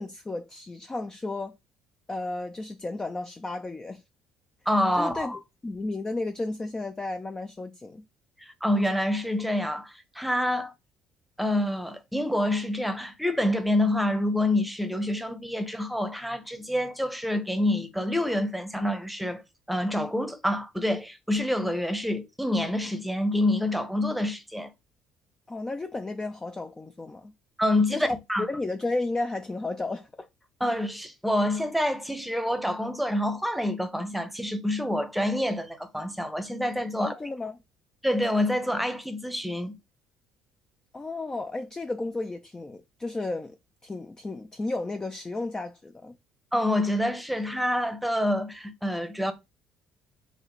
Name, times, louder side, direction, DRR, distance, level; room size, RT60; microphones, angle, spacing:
voice 1, 0.0-1.5 2.1-4.0 5.0-8.0 25.5-27.3 27.9-30.3 37.0-37.6 40.9-43.6 43.8-46.2, left 2 dB, 20° left, 0.4 m, -33 dB
voice 2, 4.7-5.4 8.4-10.7 11.4-19.4 19.7-24.7 27.6-28.5 30.6-37.1 38.0-39.8 46.5-49.3, left 1 dB, ahead, 0.8 m, -27 dB
4.0 x 2.4 x 3.1 m
hypercardioid pair, 60°, 3 cm